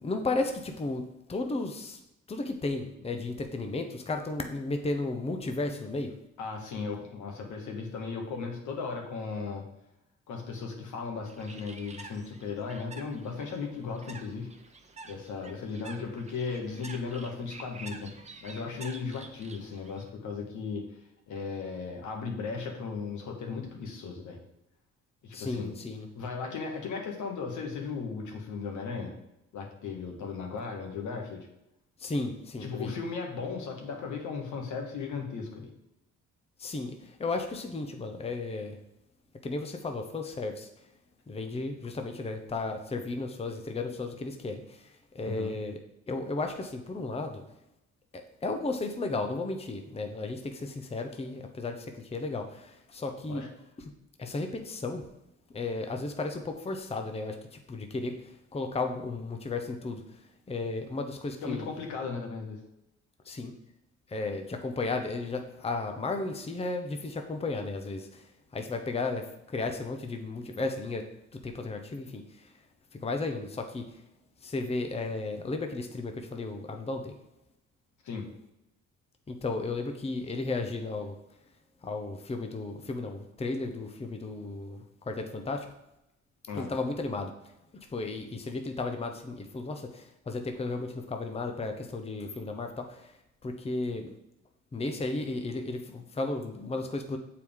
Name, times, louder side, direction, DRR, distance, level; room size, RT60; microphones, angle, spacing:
voice 1, 0.0-2.0 2.3-6.1 25.3-26.1 32.0-32.9 36.6-38.8 39.4-40.7 41.3-45.8 46.1-47.4 48.1-53.5 54.2-55.1 55.5-57.4 57.7-60.2 60.5-61.7 63.3-63.5 64.1-72.5 72.9-74.0 74.4-77.1 79.3-81.2 81.8-85.7 86.5-87.3 87.7-93.1 93.4-94.1 94.7-97.2, left 3 dB, 20° left, 5 dB, 0.7 m, -34 dB
voice 2, 6.4-9.6 10.3-14.5 15.0-18.1 18.4-20.8 21.3-24.4 25.2-25.7 26.1-29.1 29.5-31.5 32.6-35.7 45.2-45.5 53.3-53.5 61.4-62.6 78.0-78.3 86.5-86.7, left 5 dB, 75° left, 1 dB, 1.4 m, -36 dB
Bird, 11.3-20.1, right 3 dB, 20° right, 0.8 m, -49 dB
6.9 x 4.7 x 3.6 m, 0.88 s
cardioid pair, 90°, 30 cm